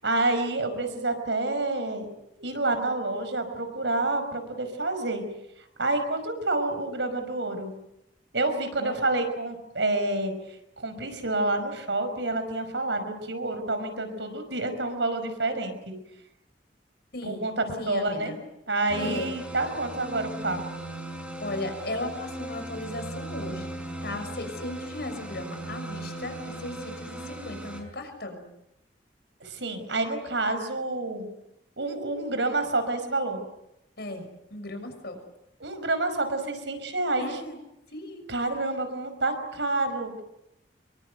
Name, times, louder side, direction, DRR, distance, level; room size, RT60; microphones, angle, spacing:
voice 1, 0.0-2.1 2.4-5.2 5.8-7.7 8.3-10.3 10.8-16.0 17.2-18.4 18.7-20.6 24.1-24.2 29.4-31.3 31.8-33.4 35.6-37.4 38.3-40.2, right 2 dB, 80° right, 8 dB, 5.3 m, -28 dB
voice 2, 17.1-17.5 17.8-18.4 19.0-19.3 21.4-28.5 34.0-35.2 37.2-37.6 37.9-38.3, left 2 dB, 60° left, 7 dB, 6.3 m, -36 dB
sound 1, 18.9-27.8, right 1 dB, 5° right, 5.7 m, -37 dB
26.5 x 23.5 x 8.0 m, 0.84 s
head